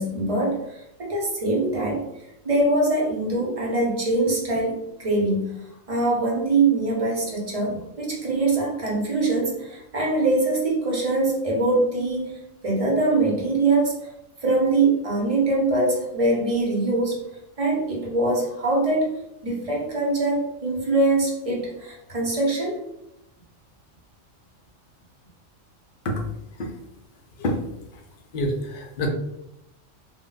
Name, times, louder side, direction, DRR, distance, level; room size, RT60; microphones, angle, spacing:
voice 1, 0.0-2.0 2.4-5.6 5.9-12.4 12.6-14.0 14.4-17.2 17.6-19.1 19.4-22.8, right 2 dB, 35° right, -2 dB, 0.6 m, -23 dB
voice 2, 28.3-29.1, left 1 dB, 65° left, 1 dB, 0.4 m, -26 dB
2.2 x 2.1 x 3.8 m, 0.85 s
omnidirectional pair, 1.4 m